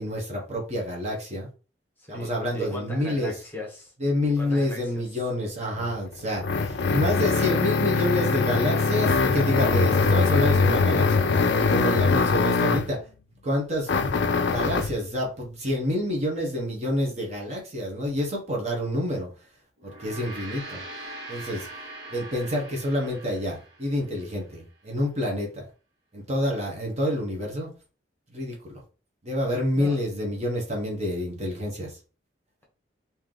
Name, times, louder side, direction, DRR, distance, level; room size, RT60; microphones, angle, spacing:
voice 1, 0.0-1.5 2.1-3.3 4.0-13.0 13.4-14.1 14.4-19.3 19.8-20.8 21.3-21.7 22.1-25.6 26.1-27.7 28.3-28.8 29.2-32.0, left 1 dB, 35° right, 1.0 m, -28 dB
voice 2, 2.0-3.9 4.4-5.0 29.8-30.0, left 1 dB, 10° left, 1.1 m, -38 dB
sound 1, 5.8-13.0 13.9-15.0, left 4 dB, 60° left, 0.4 m, -22 dB
Gong, 19.8-24.4, right 2 dB, 60° right, 1.7 m, -42 dB
3.3 x 2.8 x 3.7 m
head